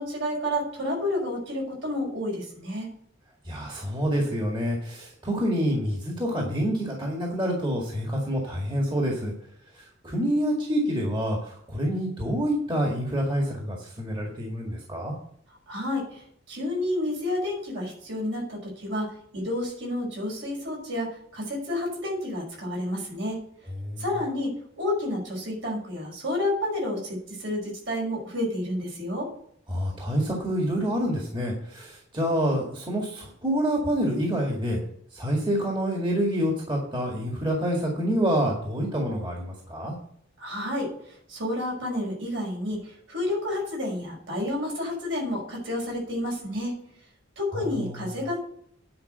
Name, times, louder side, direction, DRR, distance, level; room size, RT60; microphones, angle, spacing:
voice 1, 0.0-2.9 15.7-16.2 16.5-23.4 24.0-29.3 40.4-40.9 41.3-46.8 47.4-48.4, left 1 dB, 65° right, -2 dB, 5.3 m, -30 dB
voice 2, 3.4-9.3 9.7-15.1 23.8-24.0 29.7-34.8 35.1-39.9 47.5-48.1, equal, 25° right, -1 dB, 1.9 m, -27 dB
9.8 x 5.2 x 7.8 m, 0.67 s
head